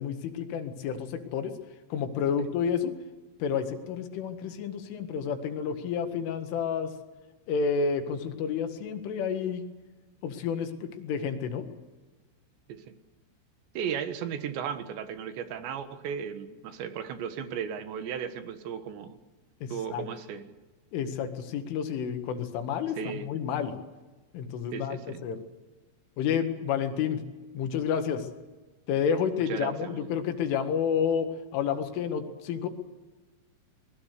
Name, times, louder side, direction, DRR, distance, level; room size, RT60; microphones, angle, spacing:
voice 1, 0.0-1.5 1.9-2.9 3.4-6.9 7.5-9.6 10.2-11.7 19.6-20.1 20.9-23.8 24.3-25.4 26.2-27.2 27.5-28.3 28.9-32.7, left 7 dB, 75° left, 6 dB, 4.3 m, -30 dB
voice 2, 13.8-19.2 19.7-20.5 23.0-23.3 24.7-25.2 29.5-30.1, right 8 dB, 70° right, 9 dB, 3.5 m, -35 dB
27.5 x 21.0 x 6.7 m, 1.2 s
omnidirectional pair, 5.7 m